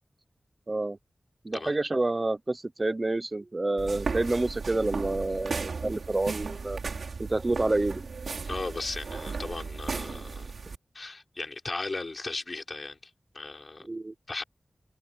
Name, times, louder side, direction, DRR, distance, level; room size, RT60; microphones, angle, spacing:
voice 1, 0.7-1.0 1.4-6.8 7.2-8.1 13.9-14.1, right 2 dB, 35° right, 0.5 m, -28 dB
sound 1, 3.8-10.8, right 4 dB, 90° right, 5.6 m, -35 dB
voice 2, 8.4-10.6 10.9-13.9 14.3-14.4, left 3 dB, 45° left, 4.9 m, -37 dB
wide cardioid pair, 80°, 0 cm